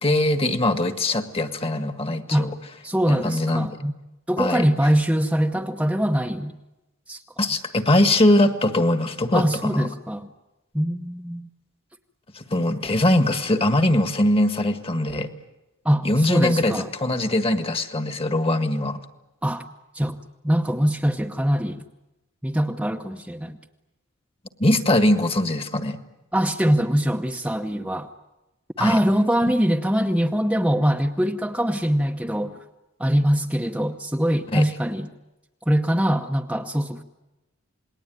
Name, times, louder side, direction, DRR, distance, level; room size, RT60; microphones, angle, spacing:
voice 1, 0.0-2.5 3.1-3.7 4.4-4.6 7.4-9.9 12.3-15.3 16.0-19.0 24.6-26.0 28.8-29.0 34.5-34.7, left 1 dB, 25° left, 9 dB, 1.6 m, -21 dB
voice 2, 2.8-3.9 4.3-6.6 7.1-7.2 9.3-10.3 10.7-11.5 15.8-16.9 19.4-19.6 19.9-20.2 20.4-21.8 22.4-23.6 26.3-28.1 28.8-32.6 33.0-35.1 35.7-37.0, equal, 5° right, 4 dB, 0.8 m, -23 dB
28.0 x 20.0 x 9.2 m, 1.0 s
head